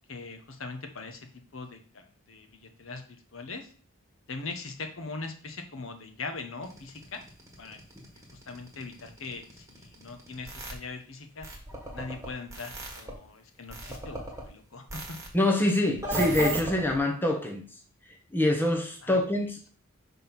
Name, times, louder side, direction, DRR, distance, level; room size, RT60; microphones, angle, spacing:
voice 1, 0.1-3.7 4.3-7.2 7.6-7.8 8.3-11.5 11.9-15.0 19.0-19.2, left 3 dB, 65° left, 6 dB, 1.0 m, -41 dB
sound 1, 6.6-10.7 11.4-13.1 13.7-14.4 14.9-15.3 16.0-17.0, right 1 dB, 15° right, 1.5 m, -35 dB
voice 2, 15.3-17.6 18.3-19.7, left 1 dB, 10° left, 2 dB, 0.9 m, -25 dB
5.7 x 3.7 x 5.9 m, 0.42 s
head